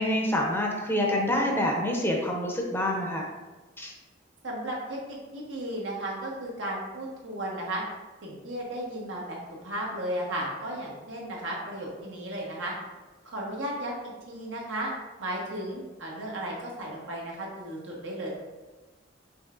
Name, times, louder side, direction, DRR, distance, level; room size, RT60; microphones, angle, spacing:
voice 1, 0.0-3.2 3.8-3.9, left 1 dB, 10° left, 0 dB, 0.5 m, -27 dB
voice 2, 4.4-7.8 8.2-12.7 13.2-14.9 15.2-18.3, right 1 dB, 85° right, -2 dB, 1.1 m, -34 dB
5.3 x 3.2 x 2.5 m, 1.2 s
head